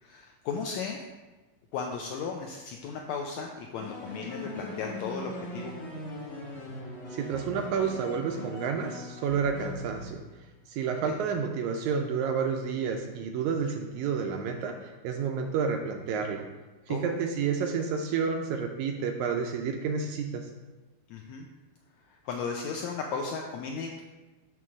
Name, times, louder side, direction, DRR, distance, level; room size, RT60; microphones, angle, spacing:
voice 1, 0.0-1.0 1.7-5.8 11.0-11.2 16.9-17.0 21.1-21.4 22.1-24.0, left 5 dB, 85° left, 1 dB, 1.6 m, -35 dB
sound 1, 3.8-10.4, equal, 50° left, 0.8 m, -41 dB
voice 2, 7.1-10.2 10.7-16.5 16.9-20.5, right 6 dB, 80° right, 4 dB, 1.7 m, -30 dB
6.9 x 3.1 x 6.1 m, 1.2 s
omnidirectional pair, 3.7 m